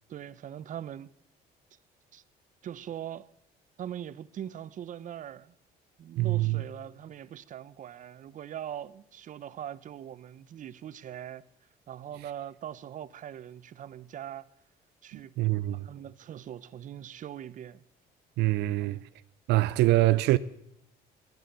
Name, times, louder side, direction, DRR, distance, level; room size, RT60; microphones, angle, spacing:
voice 1, 0.1-1.1 2.1-2.2 2.6-3.3 3.8-5.5 6.0-11.4 11.9-14.5 15.0-15.3 15.7-17.8 18.8-19.0, right 10 dB, 50° right, 0.7 m, -41 dB
voice 2, 6.2-6.6 15.1-15.9 18.4-19.1 19.5-20.4, right 17 dB, 85° right, 0.6 m, -25 dB
19.5 x 10.5 x 6.8 m
cardioid pair, 110°, 17 cm